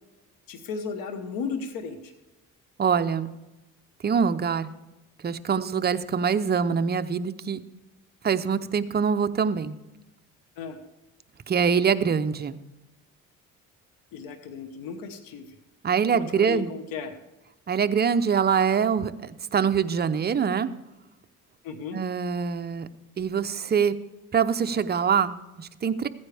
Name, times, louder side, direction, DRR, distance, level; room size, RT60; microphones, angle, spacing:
voice 1, 0.5-2.1 10.6-10.8 14.1-15.5 16.1-17.1 21.6-22.0, left 5 dB, 80° left, 8 dB, 1.3 m, -35 dB
voice 2, 2.8-3.3 4.0-4.7 5.2-7.6 8.2-9.8 11.5-12.6 15.8-16.7 17.7-20.7 21.9-22.9 23.2-23.9 24.3-26.1, right 6 dB, 30° right, 10 dB, 0.6 m, -24 dB
15.0 x 9.5 x 3.4 m, 1.0 s
cardioid pair, 95°, 34 cm